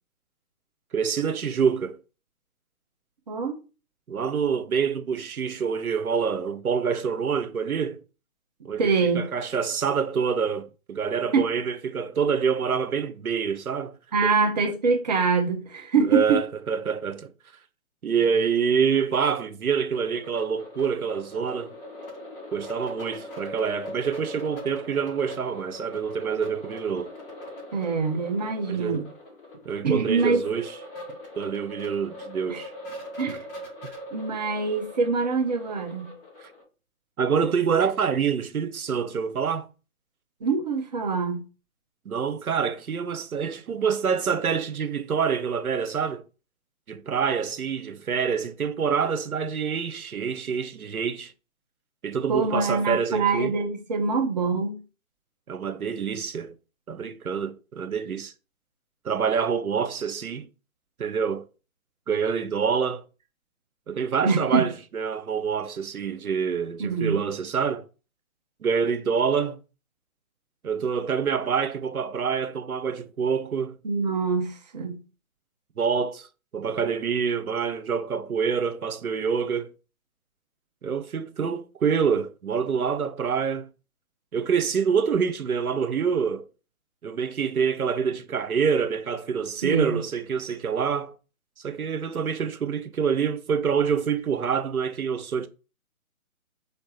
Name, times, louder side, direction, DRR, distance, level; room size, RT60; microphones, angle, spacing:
voice 1, 0.9-2.0 4.1-8.0 8.6-8.9 9.1-13.9 14.3-14.4 16.0-17.3 18.0-21.8 22.5-27.1 28.7-29.0 29.7-30.8 31.4-32.7 33.8-33.9 36.4-36.5 37.2-39.7 42.1-46.2 46.9-51.3 52.0-53.6 55.5-56.5 56.9-58.3 59.0-60.5 61.0-61.5 62.1-63.0 63.9-67.8 68.6-69.6 70.6-73.8 75.8-76.3 76.5-79.7 80.8-83.7 84.3-86.5 87.0-91.1 91.6-95.5, right 6 dB, 85° right, 0.8 m, -26 dB
voice 2, 3.3-3.6 8.8-9.2 11.3-11.5 14.1-16.4 27.7-29.0 29.8-30.4 32.5-32.6 33.2-33.4 34.1-36.1 40.4-41.4 52.3-54.8 64.2-64.7 66.8-67.2 73.8-75.0 89.6-90.0, right 4 dB, 30° right, 0.8 m, -24 dB
sound 1, 19.9-36.6, left 1 dB, 40° left, 2.2 m, -41 dB
4.9 x 3.2 x 3.0 m
figure-of-eight pair, 145°, 42 cm